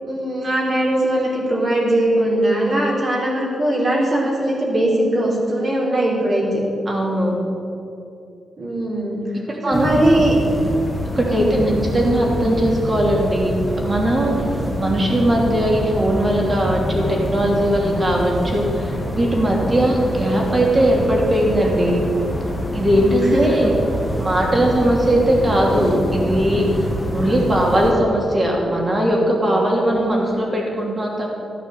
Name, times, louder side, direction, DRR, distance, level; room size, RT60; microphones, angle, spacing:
voice 1, 0.0-6.6 8.6-9.2 9.7-10.3 11.3-11.8 23.3-23.7 29.9-30.1, right 1 dB, 40° right, -3 dB, 4.0 m, -20 dB
voice 2, 6.8-7.3 9.6-9.9 10.1-10.2 11.2-11.6 11.9-22.0 22.7-23.7 24.2-31.4, right 1 dB, 25° right, -2 dB, 3.0 m, -19 dB
sound 1, 9.7-27.9, equal, 5° left, 1.8 m, -26 dB
14.5 x 9.1 x 7.9 m, 2.7 s
wide cardioid pair, 145°, 0 cm